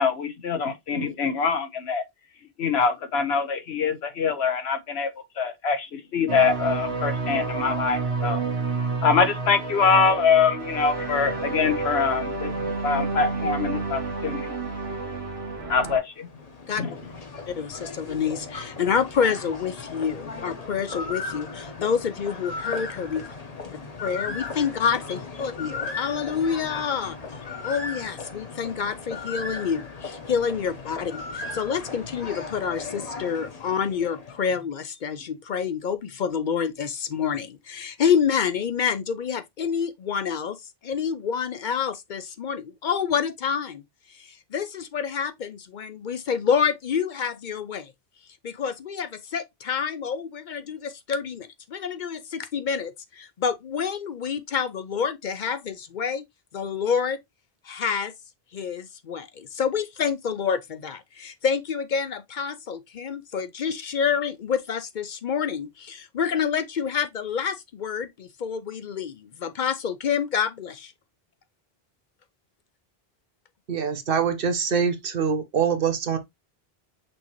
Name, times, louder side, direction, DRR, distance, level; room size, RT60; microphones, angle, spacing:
voice 1, 0.0-2.0 2.6-5.1 5.4-8.4 9.0-12.5 12.8-14.5 15.7-16.3 16.8-16.9, left 5 dB, 85° left, 1.1 m, -24 dB
sound 1, 6.3-16.0, right 4 dB, 80° right, 1.3 m, -29 dB
sound 2, 16.1-34.5, left 4 dB, 40° left, 1.0 m, -37 dB
voice 2, 17.5-23.3 24.0-27.2 27.6-43.8 44.1-47.9 48.4-56.3 56.5-57.2 57.6-58.1 58.5-70.9, left 7 dB, 55° left, 0.6 m, -28 dB
voice 3, 73.7-76.2, right 6 dB, 65° right, 1.0 m, -24 dB
6.1 x 2.8 x 3.0 m
omnidirectional pair, 1.0 m